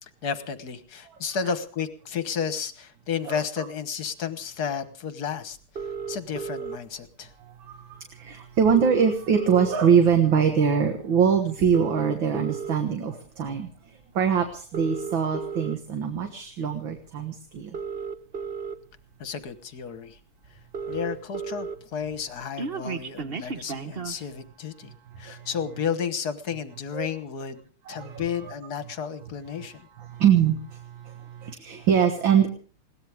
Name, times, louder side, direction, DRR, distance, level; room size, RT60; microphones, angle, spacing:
voice 1, 0.0-5.6 6.1-7.3 19.2-20.2 20.5-20.6 20.9-27.6 27.9-29.9, left 7 dB, 50° left, 11 dB, 1.5 m, -32 dB
sound 1, 5.8-6.8 7.9-8.0 8.3-8.4 8.6-10.0 10.5-10.7 11.6-12.7 13.5-13.7 14.6-15.8 17.0-17.1 17.6-18.7 19.4-19.5 19.8-19.9 20.2-20.3 20.4-21.7 22.1-24.2, right 5 dB, 45° right, 0.7 m, -34 dB
voice 2, 8.2-13.7 14.2-17.7 26.9-27.1 27.9-28.2 30.2-30.6 31.4-32.5, right 7 dB, 65° right, 6 dB, 2.2 m, -22 dB
21.5 x 18.0 x 3.5 m, 0.39 s
omnidirectional pair, 2.4 m